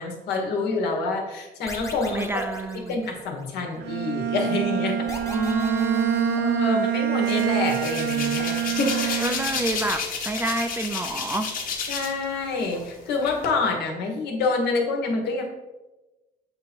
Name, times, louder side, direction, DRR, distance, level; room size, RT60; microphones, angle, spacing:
voice 1, 0.0-2.4 2.9-5.0 6.4-8.7 11.9-15.4, left 3 dB, 75° left, 2 dB, 1.4 m, -27 dB
sound 1, 1.7-3.6 5.1-6.9, left 2 dB, 15° left, 1.0 m, -40 dB
voice 2, 2.1-3.0 5.3-6.9 9.2-11.5, right 1 dB, 15° right, 6 dB, 0.4 m, -28 dB
Bowed string instrument, 3.8-9.8, right 11 dB, 75° right, 0.7 m, -26 dB
Hands, 7.2-12.2 12.6-13.5, left 4 dB, 55° left, 1.3 m, -30 dB
7.6 x 2.8 x 4.4 m, 1.1 s
cardioid pair, 110°, 17 cm